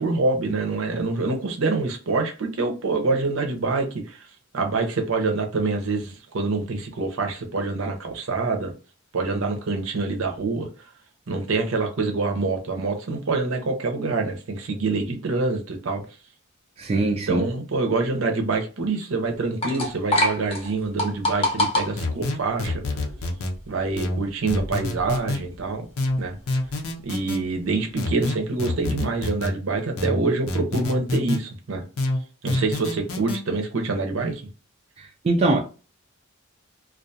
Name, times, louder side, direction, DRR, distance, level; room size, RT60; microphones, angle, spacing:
voice 1, 0.0-4.2 4.5-8.7 9.1-10.7 11.3-16.0 17.0-22.8 23.7-25.9 26.2-26.4 27.0-31.8 32.4-34.4, right 3 dB, 70° right, 0.6 m, -26 dB
voice 2, 16.8-17.5 35.0-35.6, right 2 dB, 30° right, 0.3 m, -22 dB
sound 1, 19.3-29.2, left 1 dB, 25° left, 0.6 m, -30 dB
sound 2, 22.0-23.5 24.0-25.4 26.0-27.4 28.0-29.5 30.0-31.4 32.0-33.4, left 2 dB, 85° left, 0.6 m, -27 dB
2.4 x 2.2 x 2.6 m
head